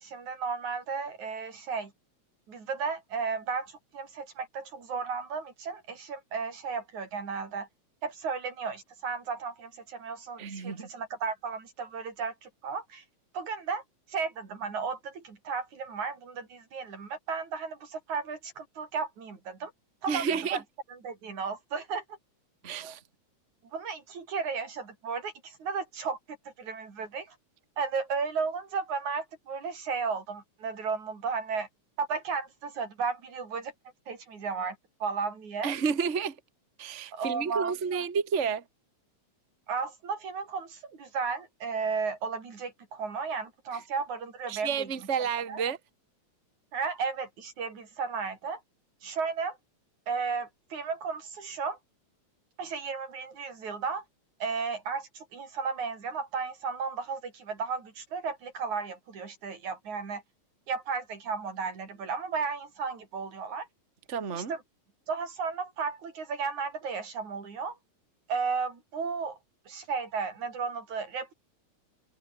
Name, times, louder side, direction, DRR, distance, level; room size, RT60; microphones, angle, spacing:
voice 1, 0.0-1.9 2.5-7.7 8.0-13.0 13.3-13.8 14.1-19.7 20.0-20.6 20.9-22.0 22.8-23.0 23.7-26.2 26.6-27.4 27.8-31.7 32.0-33.7 34.1-35.7 37.1-38.1 39.7-44.9 45.5-45.6 46.7-48.6 49.0-49.6 50.1-51.8 52.6-54.0 54.4-60.2 60.7-63.7 64.3-64.6 65.1-67.8 68.3-69.4 69.7-71.3, right 5 dB, 75° right, 5.8 m, -34 dB
voice 2, 10.4-10.9 20.1-20.6 22.6-23.0 35.6-36.4 36.8-38.6 44.5-45.8 64.1-64.5, right 6 dB, 25° right, 2.0 m, -30 dB
omnidirectional pair, 3.3 m